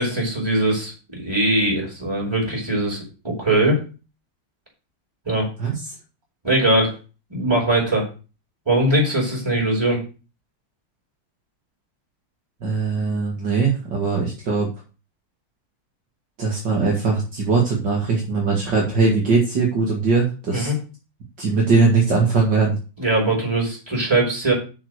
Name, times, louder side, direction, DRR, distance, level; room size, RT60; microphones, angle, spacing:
voice 1, 0.0-3.8 5.2-5.5 6.4-7.0 7.3-8.0 8.6-10.0 20.5-20.7 23.0-24.5, right 1 dB, 10° right, -2 dB, 4.9 m, -21 dB
voice 2, 5.6-5.9 12.6-14.7 16.4-20.7 21.4-22.8, right 4 dB, 55° right, -2 dB, 2.6 m, -20 dB
7.3 x 6.8 x 6.5 m, 0.33 s
omnidirectional pair, 2.4 m